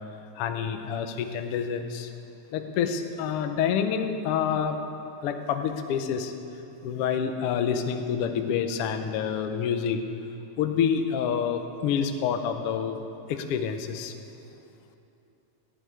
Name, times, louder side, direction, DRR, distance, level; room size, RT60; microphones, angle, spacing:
voice 1, 0.4-2.1 2.5-4.7 5.2-6.3 6.8-10.0 10.6-13.0 13.3-14.1, left 7 dB, 85° left, 7 dB, 1.3 m, -27 dB
14.0 x 7.1 x 9.5 m, 2.8 s
omnidirectional pair, 3.6 m